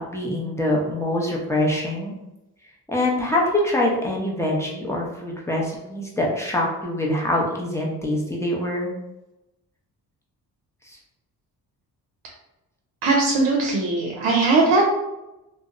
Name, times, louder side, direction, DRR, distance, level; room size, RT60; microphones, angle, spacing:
voice 1, 0.0-2.1 2.9-8.9 10.8-11.0, left 1 dB, 5° left, -3 dB, 0.6 m, -24 dB
voice 2, 13.0-14.9, right 3 dB, 75° right, -1 dB, 0.6 m, -19 dB
2.5 x 2.1 x 2.5 m, 0.96 s
supercardioid pair, 65°, 42 cm